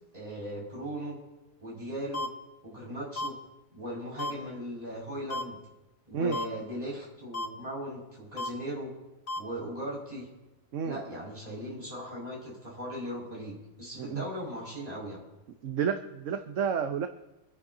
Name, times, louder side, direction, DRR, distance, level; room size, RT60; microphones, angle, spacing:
voice 1, 0.1-1.2 1.6-2.3 2.6-3.4 3.7-5.6 6.1-8.9 9.4-10.3 10.8-15.2, equal, 25° right, -5 dB, 6.0 m, -38 dB
sound 1, 2.1-2.3 3.2-3.3 4.2-4.3 5.3-5.4 6.3-6.4 7.3-7.5 8.4-8.5 9.3-9.4, left 2 dB, 40° left, 1.4 m, -32 dB
voice 2, 15.6-17.1, right 7 dB, 60° right, 7 dB, 1.1 m, -30 dB
26.0 x 10.5 x 2.7 m, 1.1 s
omnidirectional pair, 1.6 m